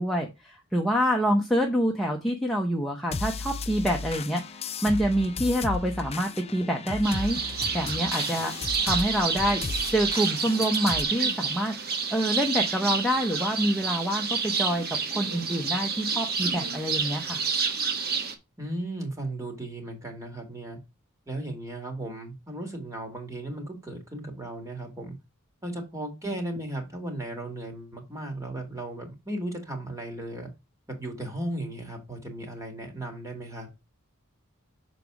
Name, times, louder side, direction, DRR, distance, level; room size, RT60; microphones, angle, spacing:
voice 1, 0.0-7.4 7.7-8.5 8.8-9.6 9.9-11.8 12.1-17.4 26.2-26.3, equal, ahead, 0 dB, 0.9 m, -26 dB
sound 1, 3.1-11.0, left 4 dB, 30° left, 0.5 m, -35 dB
sound 2, 7.0-18.3, right 5 dB, 45° right, 1.1 m, -29 dB
voice 2, 18.6-20.8 21.3-25.2 25.6-30.5 30.9-33.7, right 1 dB, 15° right, 3 dB, 2.0 m, -36 dB
6.7 x 4.1 x 4.8 m, 0.25 s
head